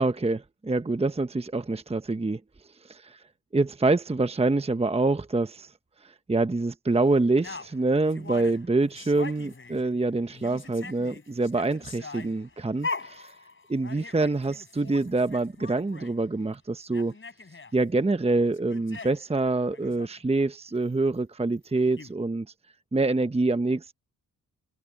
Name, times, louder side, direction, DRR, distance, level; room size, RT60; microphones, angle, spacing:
voice 1, 0.0-2.4 2.8-3.0 3.5-5.7 6.0-13.3 13.7-17.1 17.7-22.5 22.9-23.9, right 2 dB, 15° right, 1.0 m, -26 dB
sound 1, 7.4-10.0 10.3-16.2 16.5-16.6 16.8-17.7 18.4-19.3 19.7-20.1 21.6-21.7 22.0-22.1, left 3 dB, 35° left, 4.3 m, -41 dB
cardioid pair, 55°, 36 cm